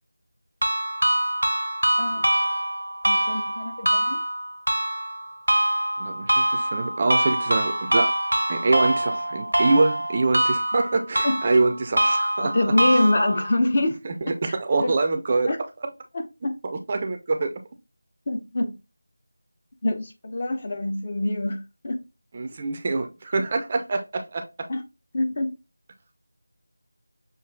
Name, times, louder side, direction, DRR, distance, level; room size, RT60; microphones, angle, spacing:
sound 1, 0.6-13.6, right 1 dB, 75° right, 0.7 m, -24 dB
voice 1, 2.0-2.3 3.1-4.2 10.7-10.8 11.2-11.4 12.4-14.0 14.5-14.9 15.4-15.6 16.1-16.6 18.3-18.7 19.8-22.0 24.7-24.8 25.1-25.6, left 1 dB, 35° left, 0.6 m, -25 dB
voice 2, 6.0-8.1 8.5-12.7 14.0-15.5 16.6-17.6 22.3-24.4, right 3 dB, 25° right, 0.5 m, -25 dB
6.6 x 2.5 x 2.3 m
figure-of-eight pair, 165°, 0 cm